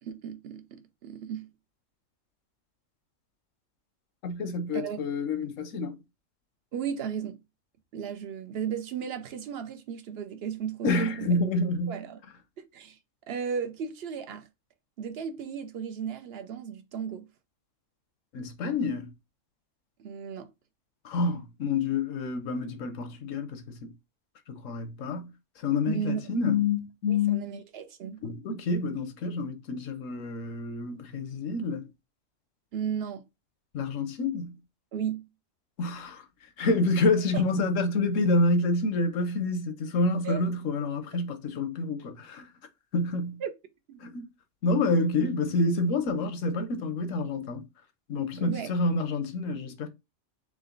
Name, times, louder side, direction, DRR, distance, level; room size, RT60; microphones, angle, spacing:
voice 1, 0.0-1.5 4.7-5.0 6.7-7.4 7.9-11.3 11.9-12.2 12.6-13.0 13.3-14.5 15.0-17.3 20.0-20.5 25.9-26.2 27.1-28.2 32.7-33.2 34.9-35.3 37.3-37.4 40.2-40.4 43.4-43.5 43.9-44.0 48.4-48.7, right 7 dB, 60° right, 0.8 m, -35 dB
voice 2, 4.2-6.0 10.8-12.0 18.3-19.1 21.0-23.9 24.5-27.5 28.2-31.9 33.7-34.6 35.8-36.2 36.6-42.5 42.9-43.4 44.0-44.2 44.6-47.6 48.1-49.9, left 3 dB, 80° left, 1.2 m, -28 dB
3.8 x 3.1 x 3.8 m
omnidirectional pair, 1.3 m